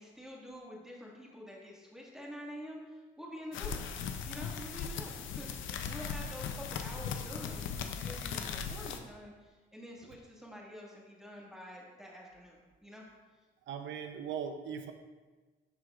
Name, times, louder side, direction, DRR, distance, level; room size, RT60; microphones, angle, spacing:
voice 1, 0.0-3.8 4.2-13.0, equal, ahead, -4 dB, 1.9 m, -47 dB
sound 1, 3.5-9.0, left 6 dB, 80° left, 0.6 m, -38 dB
voice 2, 13.7-14.9, right 7 dB, 70° right, 7 dB, 0.7 m, -39 dB
12.5 x 4.7 x 2.5 m, 1.3 s
cardioid pair, 90°, 20 cm